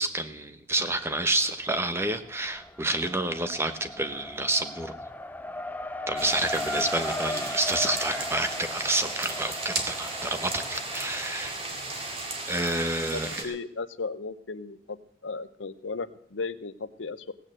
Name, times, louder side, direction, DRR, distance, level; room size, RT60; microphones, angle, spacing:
voice 1, 0.0-4.9 6.1-11.6 12.5-13.6, right 2 dB, 15° right, 9 dB, 1.0 m, -29 dB
Race car auto racing, 0.9-1.7 2.0-13.3, left 1 dB, 10° left, 0.5 m, -38 dB
sound 1, 6.2-13.4, right 3 dB, 30° right, 2.3 m, -35 dB
voice 2, 13.1-15.0 15.2-17.3, left 4 dB, 85° left, 13 dB, 0.8 m, -35 dB
16.5 x 8.9 x 7.7 m, 0.67 s
head